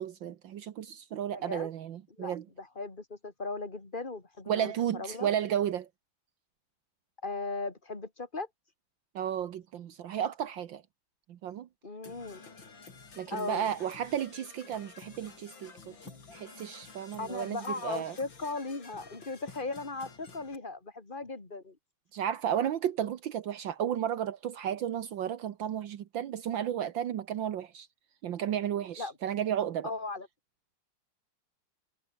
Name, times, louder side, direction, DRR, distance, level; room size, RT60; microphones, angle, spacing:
voice 1, 0.0-2.4 4.5-5.9 9.1-10.8 11.3-11.7 13.2-15.9 16.3-18.2 22.1-27.9 28.2-29.9, right 10 dB, 70° right, 1.8 m, -33 dB
voice 2, 1.3-1.7 2.2-5.3 7.2-8.5 11.8-12.5 13.3-13.7 17.2-21.8 29.0-29.1 29.8-30.3, left 3 dB, 25° left, 3.1 m, -37 dB
Percussion / Brass instrument, 12.0-20.6, left 4 dB, 70° left, 4.2 m, -51 dB
omnidirectional pair, 2.1 m